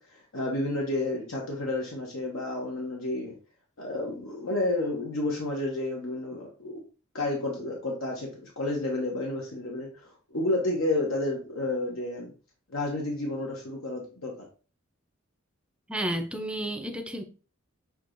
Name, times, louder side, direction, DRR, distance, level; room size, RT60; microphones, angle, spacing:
voice 1, 0.0-3.3 3.8-6.8 7.1-12.3 12.7-14.5, left 2 dB, 75° left, -1 dB, 1.1 m, -31 dB
voice 2, 15.9-17.2, right 1 dB, 5° right, 5 dB, 0.5 m, -31 dB
7.0 x 2.9 x 2.6 m, 0.36 s
head